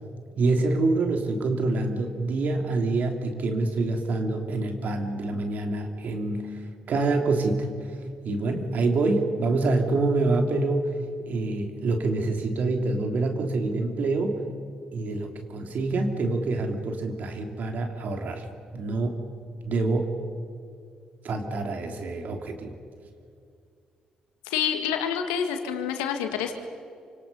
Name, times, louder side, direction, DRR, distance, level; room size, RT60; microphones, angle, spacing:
voice 1, 0.4-6.5 6.9-7.7 8.2-10.9 11.3-14.4 14.9-18.4 18.7-19.2 19.6-20.1 21.2-22.8, right 3 dB, 60° right, 4 dB, 3.2 m, -26 dB
voice 2, 24.4-26.5, left 8 dB, 80° left, 6 dB, 2.1 m, -27 dB
28.0 x 26.0 x 5.6 m, 2.4 s
hypercardioid pair, 40°, 3 cm